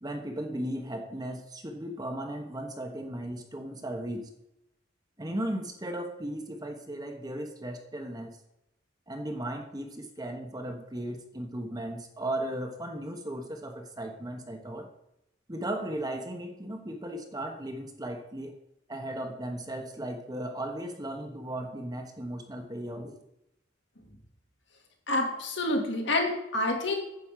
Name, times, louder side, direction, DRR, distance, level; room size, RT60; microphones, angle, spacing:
voice 1, 0.0-4.3 5.2-8.3 9.1-14.9 15.5-18.5 18.9-23.2, right 1 dB, 20° right, 4 dB, 1.1 m, -36 dB
voice 2, 25.1-26.9, left 1 dB, 65° left, 2 dB, 2.1 m, -28 dB
9.5 x 5.3 x 7.4 m, 0.85 s
head